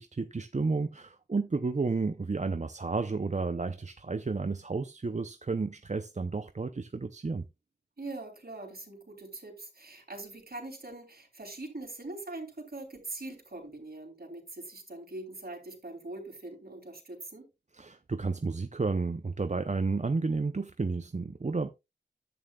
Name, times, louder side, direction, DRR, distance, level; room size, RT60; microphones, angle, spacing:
voice 1, 0.0-7.5 17.7-21.7, right 4 dB, 40° right, 0.7 m, -31 dB
voice 2, 8.0-17.5, right 2 dB, 55° right, 3.3 m, -42 dB
11.0 x 8.8 x 2.3 m
wide cardioid pair, 50°, 18 cm